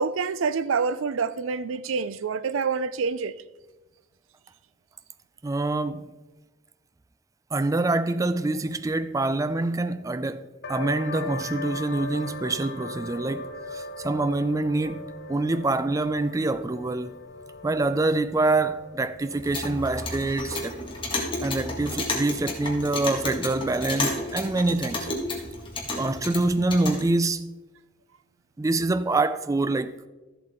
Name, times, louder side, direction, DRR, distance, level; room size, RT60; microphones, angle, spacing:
voice 1, 0.0-3.3, right 5 dB, 80° right, 0.5 m, -27 dB
voice 2, 5.4-6.1 7.5-17.2 17.6-20.8 21.4-25.1 25.9-27.6 28.6-30.1, right 2 dB, 15° right, 0.3 m, -26 dB
sound 1, 10.6-21.9, left 2 dB, 55° left, 0.8 m, -40 dB
Clock, 19.3-27.0, left 2 dB, 25° left, 1.9 m, -32 dB
13.5 x 7.7 x 3.7 m
head